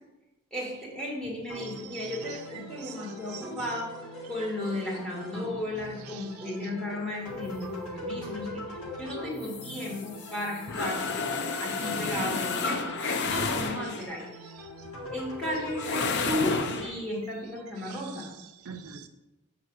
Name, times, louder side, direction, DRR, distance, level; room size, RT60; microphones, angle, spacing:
voice 1, 0.5-3.9 4.3-8.6 9.0-11.0 11.6-12.8 13.3-14.3 15.1-16.5 16.8-18.3, left 1 dB, 5° left, -5 dB, 1.9 m, -34 dB
sound 1, 1.5-16.9, left 1 dB, 75° left, 1.4 m, -41 dB
voice 2, 1.7-3.5 6.0-6.4 14.4-14.9 17.8-19.1, right 8 dB, 80° right, 6 dB, 0.6 m, -46 dB
sound 2, 9.4-14.2 15.7-16.9, left 4 dB, 50° left, 0.5 m, -31 dB
5.8 x 4.5 x 6.4 m, 1.0 s
head